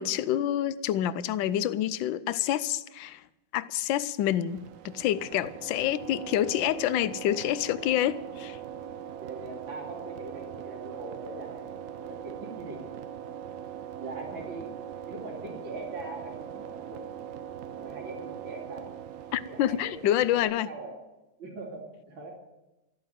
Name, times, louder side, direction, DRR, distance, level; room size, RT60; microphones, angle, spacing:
voice 1, 0.0-3.2 3.5-8.6 19.3-20.7, left 12 dB, 75° left, 1.4 m, -27 dB
sound 1, 4.5-20.4, right 9 dB, 70° right, 0.7 m, -41 dB
voice 2, 5.8-6.2 8.8-11.8 12.0-12.8 14.0-14.8 15.1-17.0 17.7-18.9 19.4-21.0 21.4-22.4, right 2 dB, 90° right, 3.4 m, -42 dB
13.5 x 9.3 x 9.1 m
omnidirectional pair, 2.1 m